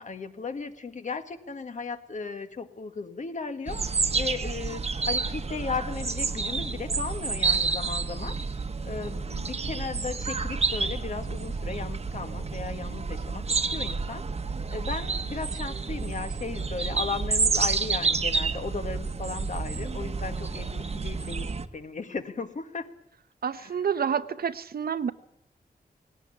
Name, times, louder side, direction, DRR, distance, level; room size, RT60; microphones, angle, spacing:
voice 1, 0.0-8.4 8.8-14.2 14.7-22.9 23.6-23.8, left 4 dB, 50° left, 8 dB, 1.7 m, -36 dB
sound 1, 3.7-21.7, right 4 dB, 40° right, 1.2 m, -29 dB
voice 2, 23.4-25.1, right 7 dB, 70° right, 12 dB, 0.9 m, -28 dB
19.0 x 18.0 x 9.6 m, 0.78 s
wide cardioid pair, 160°, 16 cm